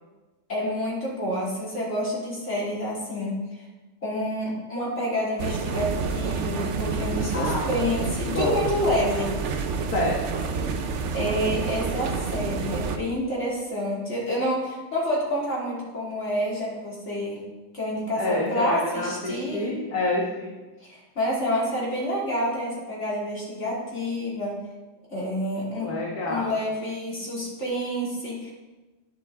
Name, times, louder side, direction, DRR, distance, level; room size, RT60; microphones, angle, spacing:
voice 1, 0.5-3.7 4.0-9.3 11.1-17.4 17.7-19.7 20.8-24.6 25.1-25.9 26.3-28.5, equal, 40° left, -6 dB, 3.7 m, -28 dB
sound 1, 5.4-13.0, right 5 dB, 55° right, 0.9 m, -28 dB
voice 2, 7.3-7.7 8.3-8.5 9.9-10.4 18.2-20.6 25.8-26.5, left 2 dB, 60° left, -3 dB, 2.0 m, -28 dB
11.0 x 10.0 x 4.0 m, 1.2 s
omnidirectional pair, 1.8 m